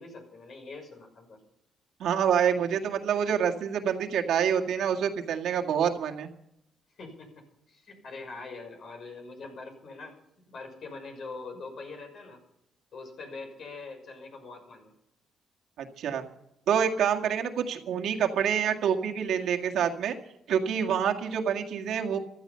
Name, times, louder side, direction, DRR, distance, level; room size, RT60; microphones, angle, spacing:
voice 1, 0.0-1.4 7.0-10.1 10.5-12.4 12.9-14.9, left 3 dB, 60° left, 4 dB, 6.1 m, -43 dB
voice 2, 2.0-6.3 15.8-16.2 16.7-20.2 20.5-22.2, right 8 dB, 75° right, 3 dB, 1.9 m, -27 dB
15.0 x 13.5 x 5.7 m, 0.79 s
cardioid pair, 90°, 0 cm